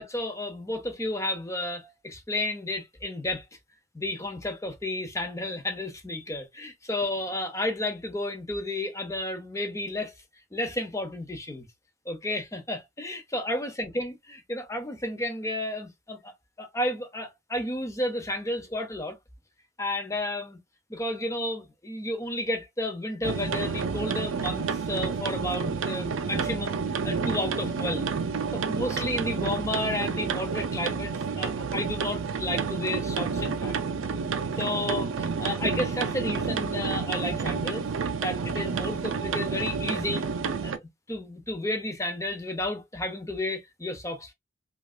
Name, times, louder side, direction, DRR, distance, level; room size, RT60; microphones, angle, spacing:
voice 1, 0.0-3.4 3.9-10.1 10.5-11.7 12.1-19.2 19.8-20.6 20.9-26.8 27.0-28.1 28.5-33.7 34.5-37.9 38.2-40.2 40.6-44.3, left 1 dB, 15° left, 0.7 m, -32 dB
sound 1, 23.2-40.8, right 5 dB, 85° right, 0.5 m, -30 dB
3.2 x 2.5 x 2.4 m
head